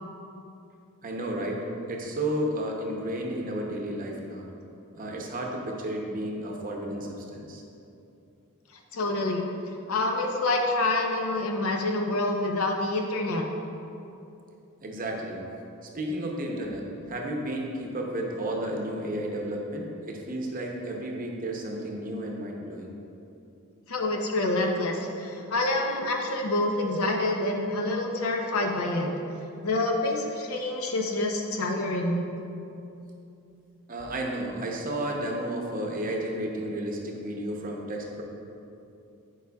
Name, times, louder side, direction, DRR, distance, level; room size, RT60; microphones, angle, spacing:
voice 1, 1.0-4.5 4.9-7.6 14.8-15.4 15.9-22.9 33.9-38.2, right 1 dB, 40° right, 0 dB, 0.7 m, -32 dB
voice 2, 8.9-9.5 9.9-13.4 23.9-29.1 29.6-32.3, left 2 dB, 75° left, 2 dB, 0.7 m, -27 dB
9.4 x 4.8 x 2.3 m, 2.7 s
head